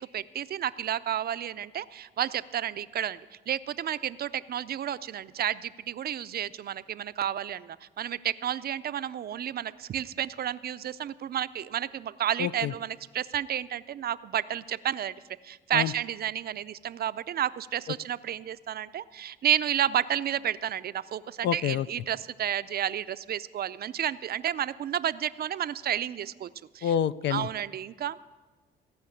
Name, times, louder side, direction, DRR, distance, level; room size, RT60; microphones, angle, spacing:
voice 1, 0.0-3.2 3.5-15.1 15.4-26.5 26.7-26.9 27.3-28.2, right 10 dB, 50° right, 15 dB, 0.5 m, -31 dB
voice 2, 12.4-12.7 15.7-15.9 21.4-21.9 26.8-27.5, left 10 dB, 65° left, 17 dB, 0.4 m, -27 dB
16.5 x 5.8 x 8.5 m, 1.3 s
cardioid pair, 90°, 20 cm